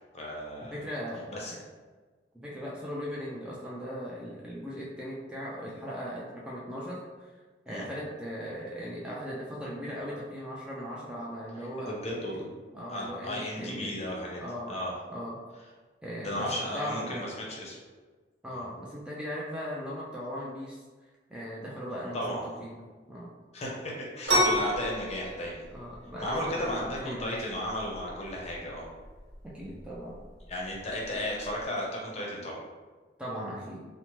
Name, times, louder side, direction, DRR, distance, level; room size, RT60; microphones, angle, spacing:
voice 1, 0.1-0.8 1.3-1.5 7.7-7.9 11.6-12.5 12.9-14.9 16.2-17.8 18.5-18.6 22.1-22.6 23.5-25.6 26.2-28.8 30.5-32.6, left 1 dB, 35° left, -3 dB, 0.6 m, -34 dB
voice 2, 0.7-1.6 2.3-7.3 7.7-12.0 12.3-12.5 12.7-14.0 14.4-14.8 15.1-15.4 16.0-17.3 18.4-20.8 21.3-22.8 23.1-23.3 24.3-24.6 25.7-27.5 29.4-30.2 33.2-33.8, equal, 5° right, -6 dB, 0.3 m, -38 dB
sound 1, 24.3-31.6, equal, 65° right, 1.2 m, -32 dB
2.9 x 2.0 x 2.9 m, 1.4 s
head